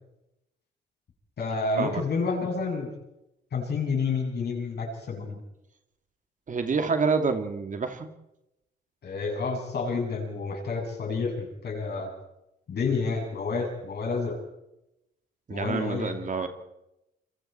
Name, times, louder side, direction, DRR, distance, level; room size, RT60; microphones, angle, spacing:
voice 1, 1.4-2.9 3.5-5.4 9.0-12.1 12.7-14.4 15.5-16.1, left 4 dB, 55° left, 1 dB, 7.3 m, -29 dB
voice 2, 6.5-8.1 15.5-16.5, right 4 dB, 40° right, 7 dB, 2.6 m, -27 dB
28.0 x 23.0 x 4.5 m, 0.89 s
cardioid pair, 90°, 20 cm